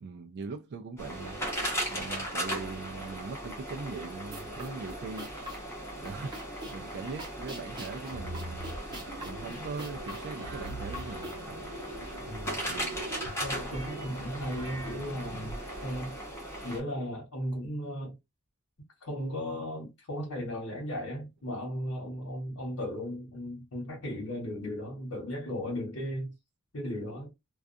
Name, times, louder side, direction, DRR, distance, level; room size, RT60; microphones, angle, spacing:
voice 1, 0.0-1.4 1.9-5.3 5.9-8.7 9.2-11.4 12.6-13.0, right 4 dB, 50° right, 0.3 m, -41 dB
sound 1, 1.0-16.8, equal, 10° left, 0.9 m, -38 dB
sound 2, 4.3-11.6, equal, 20° right, 0.8 m, -46 dB
sound 3, 8.1-15.9, right 1 dB, 80° right, 0.9 m, -43 dB
voice 2, 12.3-12.7 13.4-16.2 16.6-18.2 19.0-26.3 26.7-27.3, equal, 75° left, 1.1 m, -36 dB
2.4 x 2.3 x 2.5 m
head